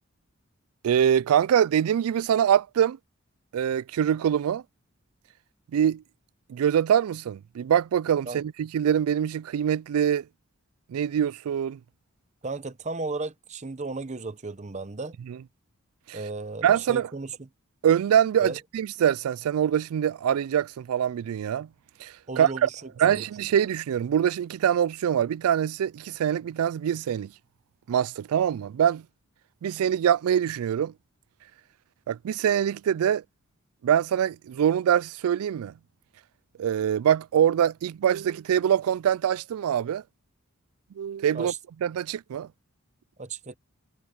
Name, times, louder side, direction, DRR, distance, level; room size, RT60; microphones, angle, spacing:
voice 1, 0.8-3.0 3.5-4.6 5.7-6.0 6.5-10.2 10.9-11.8 15.3-15.4 16.1-16.2 16.6-17.1 17.8-21.7 22.0-22.7 23.0-27.3 27.9-29.0 29.6-30.9 32.1-33.2 33.8-35.7 36.6-40.0 41.0-41.5 41.8-42.5, right 9 dB, 80° right, 0.3 m, -24 dB
voice 2, 12.4-15.2 16.1-17.5 18.4-18.6 22.3-23.2 41.3-41.6 43.2-43.6, right 3 dB, 35° right, 0.8 m, -35 dB
head